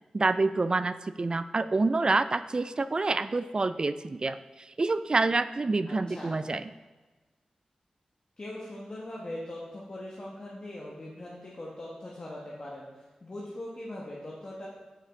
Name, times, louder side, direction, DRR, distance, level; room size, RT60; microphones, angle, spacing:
voice 1, 0.1-6.6, right 3 dB, 40° right, 13 dB, 0.3 m, -27 dB
voice 2, 5.9-6.4 8.4-14.7, left 1 dB, 45° left, -5 dB, 1.4 m, -41 dB
8.4 x 5.6 x 3.7 m, 1.3 s
cardioid pair, 65°, 2 cm